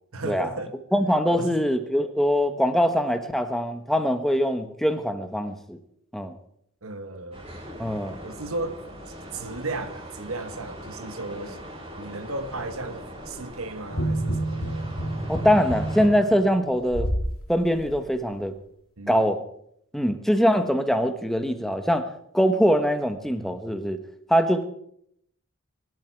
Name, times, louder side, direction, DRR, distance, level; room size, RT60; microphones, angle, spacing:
voice 1, 0.1-0.8 1.3-1.6 6.8-7.4 8.2-8.8 9.3-11.6 12.0-14.9 19.0-19.2, right 2 dB, 80° right, 1.5 m, -35 dB
voice 2, 0.9-5.8 6.1-6.3 7.8-8.2 15.3-17.1 17.5-18.5 19.1-19.4 19.9-24.0 24.3-24.6, equal, ahead, 1.2 m, -23 dB
sound 1, 7.3-16.1, equal, 30° right, 7.6 m, -41 dB
sound 2, 13.9-17.3 17.8-17.9, right 1 dB, 80° left, 3.3 m, -28 dB
25.0 x 12.0 x 4.7 m
head